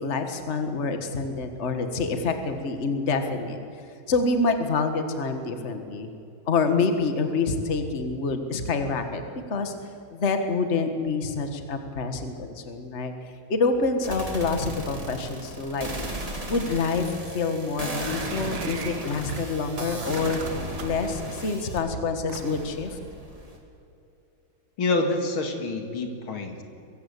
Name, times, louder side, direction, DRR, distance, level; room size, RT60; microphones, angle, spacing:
voice 1, 0.0-3.6 4.1-6.1 6.5-9.2 9.5-9.7 10.1-13.1 13.5-15.9 16.5-17.1 17.3-20.4 20.8-23.0, left 4 dB, 35° left, 7 dB, 1.8 m, -27 dB
sound 1, 14.0-21.8 22.4-23.6, right 1 dB, 15° right, 2.8 m, -36 dB
sound 2, 17.8-19.4 19.9-21.0 22.3-22.7, right 6 dB, 85° right, 2.4 m, -38 dB
voice 2, 24.8-26.6, left 2 dB, 80° left, 5 dB, 3.0 m, -27 dB
22.5 x 16.0 x 8.4 m, 2.7 s
omnidirectional pair, 2.2 m